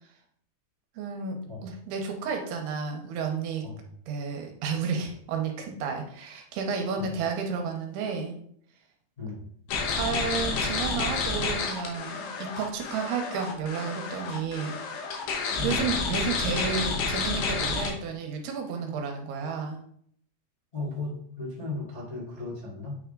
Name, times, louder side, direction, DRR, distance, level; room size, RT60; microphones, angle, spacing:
voice 1, 1.0-3.7 4.1-8.4 9.9-14.8 15.6-19.8, right 5 dB, 80° right, 3 dB, 2.7 m, -32 dB
sound 1, 9.7-17.9, left 4 dB, 80° left, 3.2 m, -30 dB
voice 2, 20.7-23.0, left 3 dB, 40° left, -8 dB, 0.5 m, -36 dB
8.7 x 3.5 x 3.7 m, 0.65 s
omnidirectional pair, 4.7 m